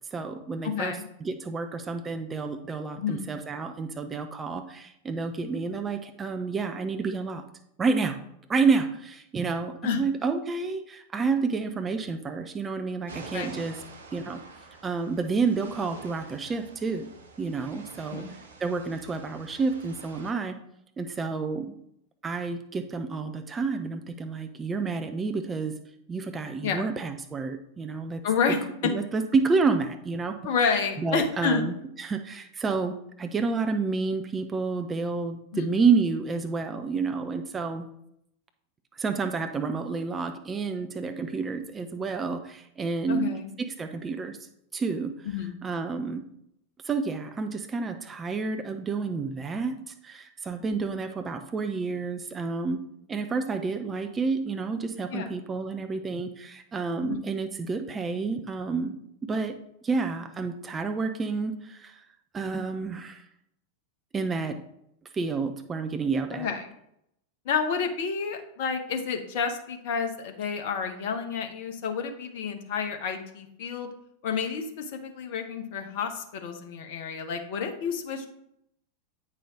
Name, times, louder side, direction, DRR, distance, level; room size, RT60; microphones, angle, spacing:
voice 1, 0.1-1.0 1.2-7.4 7.8-8.2 8.5-13.8 14.1-14.4 14.8-17.1 17.4-18.2 18.6-20.5 21.0-21.7 22.2-25.7 26.1-28.2 28.8-30.4 31.0-37.9 38.9-43.3 43.6-44.4 44.7-45.3 45.6-46.2 46.9-52.8 53.1-59.0 59.2-59.6 59.8-62.0 62.3-63.2 64.1-64.6 65.1-66.5, right 4 dB, 20° right, 7 dB, 0.6 m, -29 dB
voice 2, 0.6-1.1 3.0-3.3 9.8-10.0 13.3-13.6 18.1-18.4 26.6-26.9 28.2-28.9 30.4-31.6 35.5-35.7 43.1-43.5 45.3-45.6 55.1-55.3 57.0-57.2 66.3-66.7 67.4-73.9 74.2-78.3, left 6 dB, 50° left, 5 dB, 0.9 m, -30 dB
sound 1, 13.1-20.3, right 4 dB, 65° right, 1.1 m, -47 dB
8.4 x 5.5 x 3.6 m, 0.76 s
figure-of-eight pair, 90°, 0 cm